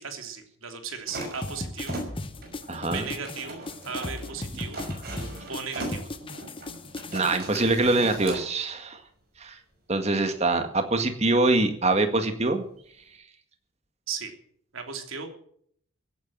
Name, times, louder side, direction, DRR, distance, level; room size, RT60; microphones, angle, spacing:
voice 1, 0.0-2.1 2.8-4.8 5.1-6.0 14.1-14.3 14.7-15.3, right 6 dB, 70° right, 5 dB, 3.2 m, -36 dB
sound 1, 1.1-8.5, right 1 dB, 45° right, 5.7 m, -39 dB
sound 2, 1.4-7.4, left 2 dB, 25° left, 0.9 m, -37 dB
voice 2, 2.7-3.0 7.1-9.0 9.4-9.6 9.9-12.6, right 2 dB, 30° right, 7 dB, 1.9 m, -24 dB
16.0 x 9.5 x 7.5 m, 0.62 s
head